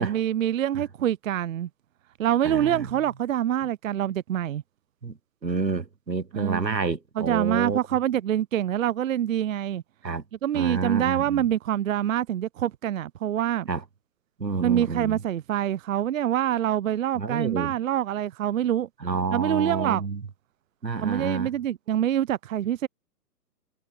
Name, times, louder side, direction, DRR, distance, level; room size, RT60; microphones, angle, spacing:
voice 1, 0.0-1.7 2.2-4.6 6.3-6.8 7.2-9.8 10.4-13.7 14.6-18.9 19.3-20.0 21.0-22.9, right 11 dB, 55° right, 0.5 m, -25 dB
voice 2, 2.4-2.9 5.0-5.2 5.4-7.8 10.0-10.2 10.5-11.4 13.7-13.8 14.4-15.2 17.2-17.7 19.0-20.2 20.8-21.5, right 4 dB, 90° right, 1.2 m, -28 dB
figure-of-eight pair, 120°, 49 cm